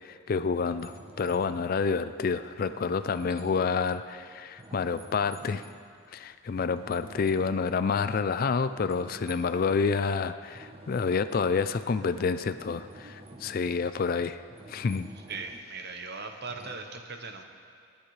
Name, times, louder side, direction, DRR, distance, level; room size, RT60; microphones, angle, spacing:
voice 1, 0.0-5.6 6.1-14.4 14.7-15.1, left 5 dB, 40° left, 12 dB, 0.3 m, -28 dB
sound 1, 0.6-5.9 6.3-8.3 8.5-9.8 10.1-13.8 14.2-15.7 16.5-16.8, right 1 dB, 25° right, 0.9 m, -49 dB
voice 2, 15.3-17.4, right 4 dB, 50° right, 5 dB, 1.0 m, -39 dB
25.0 x 10.5 x 3.2 m, 2.3 s
head